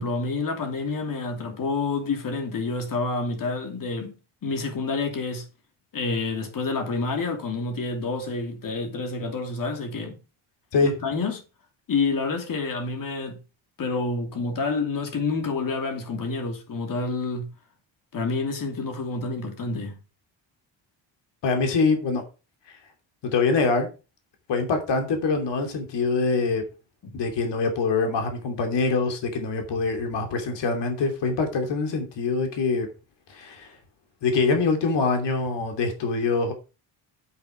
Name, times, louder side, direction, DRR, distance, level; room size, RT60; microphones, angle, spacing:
voice 1, 0.0-4.1 4.4-5.5 5.9-10.2 10.8-11.4 11.9-13.4 13.8-17.5 18.1-20.0 27.0-27.1, left 3 dB, 45° left, 2.8 m, -28 dB
voice 2, 21.4-22.2 23.2-23.9 24.5-26.6 27.1-32.9 33.3-33.7 34.2-36.5, left 4 dB, 60° left, 2.9 m, -24 dB
8.5 x 8.3 x 5.0 m
cardioid pair, 155°, 47 cm